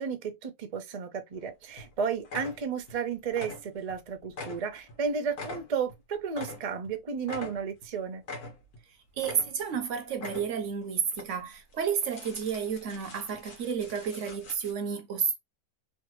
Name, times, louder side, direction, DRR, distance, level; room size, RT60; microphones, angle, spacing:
voice 1, 0.0-8.2, right 6 dB, 50° right, 0.4 m, -33 dB
sound 1, 1.3-1.5 1.8-1.9 2.2-3.0 3.3-4.0 4.3-6.9 7.2-7.9 8.2-8.8 9.2-9.8 10.1-10.7 11.1-11.3 11.7-14.7, left 3 dB, 85° left, 1.6 m, -43 dB
voice 2, 8.9-15.4, right 7 dB, 65° right, 0.8 m, -31 dB
3.2 x 2.6 x 3.0 m
omnidirectional pair, 1.6 m